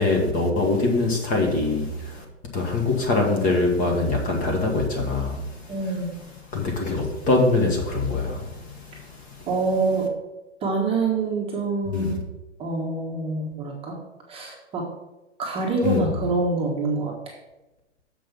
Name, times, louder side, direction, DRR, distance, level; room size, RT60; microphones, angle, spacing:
voice 1, 0.0-2.2 2.5-5.5 6.5-8.6 11.9-12.2 15.8-16.2, left 3 dB, 20° left, 1 dB, 1.4 m, -23 dB
voice 2, 5.7-6.1 9.5-10.1 10.6-12.2 12.6-14.0 14.3-14.9 15.4-17.4, right 3 dB, 15° right, -2 dB, 1.2 m, -26 dB
7.0 x 5.4 x 5.6 m, 1.0 s
hypercardioid pair, 140°, 36 cm